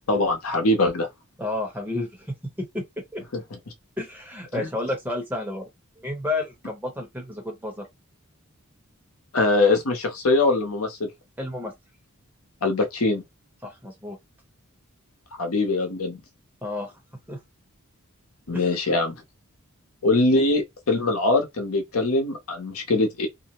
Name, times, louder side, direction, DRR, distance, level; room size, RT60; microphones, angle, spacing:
voice 1, 0.1-1.1 4.5-4.7 9.3-11.1 12.6-13.2 15.4-16.2 18.5-19.1 20.0-23.3, left 2 dB, 70° left, 0.8 m, -22 dB
voice 2, 1.4-2.3 2.7-2.8 3.1-3.2 4.0-5.6 6.0-7.9 11.4-11.7 13.6-14.2 16.6-16.9 17.3-17.4 18.5-18.8, left 2 dB, 10° right, 1.0 m, -31 dB
2.6 x 2.0 x 2.9 m
head